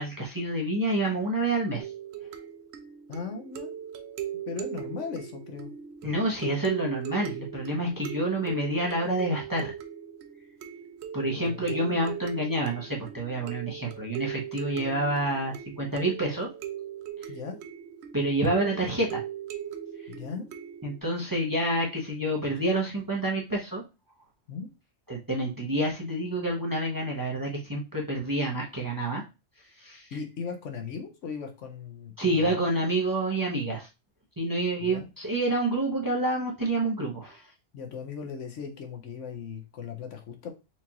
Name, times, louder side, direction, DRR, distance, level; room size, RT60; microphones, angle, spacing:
voice 1, 0.0-1.9 6.0-9.7 11.1-16.5 18.1-19.2 20.8-23.8 25.1-29.2 29.8-30.1 32.2-33.9 34.4-37.4, right 1 dB, 20° right, -1 dB, 0.8 m, -28 dB
sound 1, 1.8-21.0, right 9 dB, 65° right, 0.8 m, -39 dB
voice 2, 3.1-3.7 4.5-5.7 11.4-11.9 14.7-15.0 17.3-17.6 20.1-20.5 24.5-24.7 30.1-32.6 34.8-35.1 37.7-40.5, left 6 dB, 70° left, 4 dB, 1.1 m, -38 dB
4.5 x 2.5 x 2.8 m, 0.27 s
omnidirectional pair, 1.4 m